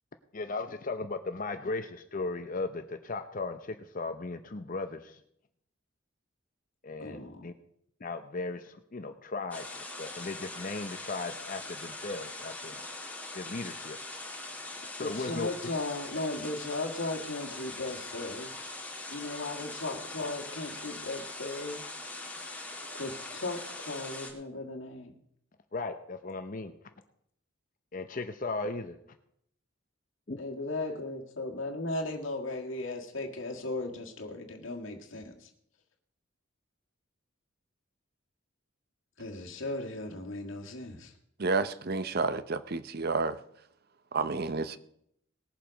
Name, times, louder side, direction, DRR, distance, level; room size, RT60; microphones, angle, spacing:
voice 1, 0.3-5.2 6.8-7.5 8.0-12.8 13.3-14.0 15.0-15.5 25.7-26.7 27.9-29.0 30.3-30.4, left 3 dB, 40° left, 0.7 m, -37 dB
voice 2, 7.0-7.5 15.0-18.5 18.8-21.8 22.9-25.1 30.4-35.5 39.2-41.1, left 2 dB, 70° left, 1.7 m, -37 dB
sound 1, 9.5-24.3, left 2 dB, 5° left, 2.0 m, -42 dB
voice 3, 41.4-43.4 44.1-44.8, right 4 dB, 50° right, 0.7 m, -30 dB
19.0 x 7.4 x 5.1 m
head